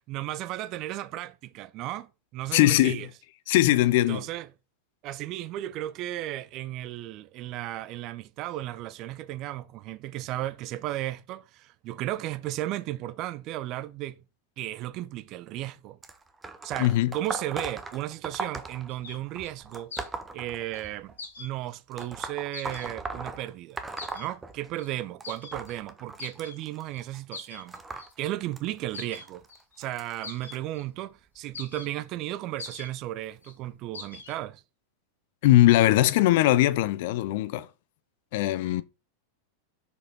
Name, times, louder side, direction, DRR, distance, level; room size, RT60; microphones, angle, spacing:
voice 1, 0.1-3.1 3.9-4.5 5.0-14.2 14.6-16.0 16.6-19.9 20.3-23.8 24.1-29.4 29.8-34.6, right 14 dB, 40° right, 0.5 m, -35 dB
voice 2, 2.5-3.0 3.5-4.2 16.8-17.1 35.4-37.7 38.3-38.8, left 15 dB, 50° left, 0.6 m, -20 dB
sound 1, 16.0-21.2 21.9-24.9 25.2-30.6 31.4-31.6 32.7-32.8 33.6-33.7 34.4-34.5, right 3 dB, 15° right, 0.9 m, -39 dB
sound 2, 18.9-19.2 19.4-19.5 19.9-20.1 20.7-20.9 21.2-21.5 22.0-22.1 22.5-22.9 24.0-24.3 24.8-24.9 25.2-25.8 26.2-26.6 26.9-27.0 27.3-28.3 28.8-29.8 30.2-30.8 31.4-31.9 32.3-32.4 32.6-32.9 33.2-33.5 33.9-34.3, left 4 dB, 70° left, 1.9 m, -43 dB
6.5 x 5.0 x 4.3 m
figure-of-eight pair, 90°, 0 cm